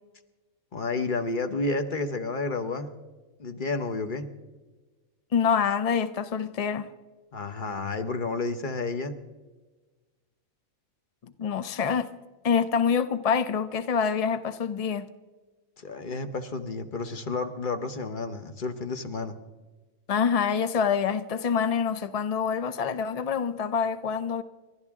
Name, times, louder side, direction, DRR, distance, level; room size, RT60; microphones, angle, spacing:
voice 1, 0.7-2.9 3.4-4.3 7.3-9.2 15.8-19.3, left 3 dB, 40° left, 1.1 m, -31 dB
voice 2, 5.3-6.9 11.4-12.1 12.4-15.1 20.1-24.4, left 6 dB, 65° left, 0.3 m, -26 dB
30.0 x 12.5 x 3.6 m
omnidirectional pair, 1.5 m